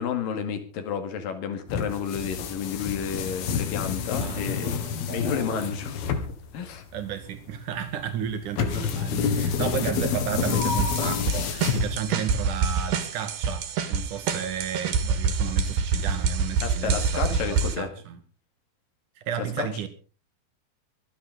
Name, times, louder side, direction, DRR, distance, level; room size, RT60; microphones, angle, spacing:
voice 1, 0.0-4.7 5.1-6.3 6.5-6.8 8.6-8.7 16.6-17.9 19.6-19.7, left 7 dB, 65° left, 3.7 m, -31 dB
sound 1, 1.7-12.3, left 7 dB, 85° left, 3.6 m, -29 dB
voice 2, 4.2-5.8 6.9-18.2 19.2-19.9, right 8 dB, 60° right, 3.0 m, -33 dB
sound 2, 10.4-17.7, right 5 dB, 85° right, 3.9 m, -26 dB
24.5 x 10.0 x 4.0 m
omnidirectional pair, 4.4 m